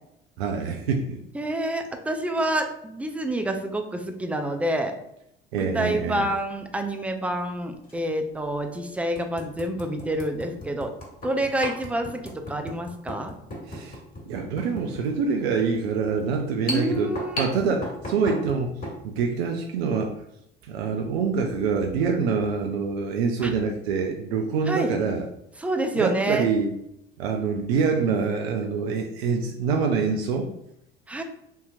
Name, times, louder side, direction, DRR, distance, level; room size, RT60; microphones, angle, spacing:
voice 1, 0.4-1.2 5.5-6.3 13.7-14.0 14.3-17.1 17.4-20.1 20.6-25.3 26.0-26.7 27.2-30.5, right 5 dB, 75° right, 3 dB, 0.5 m, -25 dB
voice 2, 1.3-4.9 5.5-10.9 11.2-13.3 16.7-17.4 23.4-23.5 24.7-24.9 25.6-26.5 31.1-31.2, right 1 dB, 5° right, 5 dB, 0.3 m, -28 dB
sound 1, 6.3-6.4 7.8-7.9 8.5-8.6 9.1-19.0, left 1 dB, 30° left, 1.4 m, -37 dB
3.6 x 2.8 x 2.6 m, 0.79 s
figure-of-eight pair, 65°, 31 cm